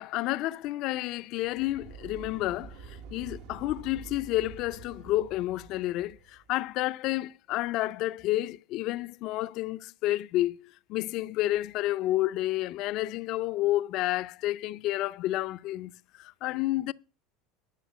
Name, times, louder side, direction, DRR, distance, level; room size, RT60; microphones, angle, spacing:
voice 1, 0.0-16.9, left 16 dB, 55° left, 0.4 m, -30 dB
sound 1, 1.4-6.6, right 5 dB, 65° right, 1.2 m, -47 dB
11.5 x 5.4 x 7.2 m
supercardioid pair, 115°, 0 cm